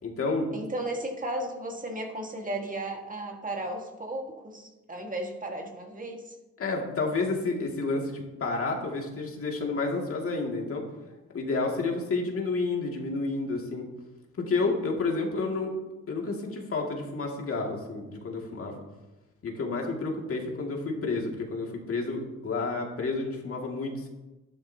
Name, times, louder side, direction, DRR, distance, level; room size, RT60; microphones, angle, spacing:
voice 1, 0.0-0.5 6.6-10.8 11.3-13.8 14.4-15.7 16.1-18.8 19.4-24.1, left 3 dB, 50° left, 0 dB, 2.2 m, -30 dB
voice 2, 0.5-6.3, right 1 dB, 25° right, 2 dB, 1.7 m, -35 dB
12.5 x 10.5 x 2.8 m, 1.1 s
cardioid pair, 90°, 30 cm